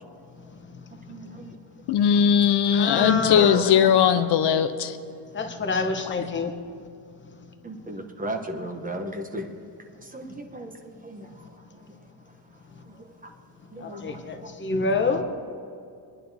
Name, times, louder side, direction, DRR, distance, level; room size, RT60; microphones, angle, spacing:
voice 1, 1.1-1.5 3.3-4.6 7.6-9.5 10.1-10.3 10.5-10.7 11.0-11.3 13.0-13.1 13.7-14.2, right 1 dB, 20° right, 4 dB, 0.8 m, -35 dB
voice 2, 1.9-5.0, left 8 dB, 60° left, 9 dB, 0.6 m, -19 dB
voice 3, 2.7-3.7 5.3-6.5 13.8-15.2, left 4 dB, 25° left, 6 dB, 0.8 m, -26 dB
24.5 x 10.5 x 2.7 m, 2.4 s
cardioid pair, 165°, 44 cm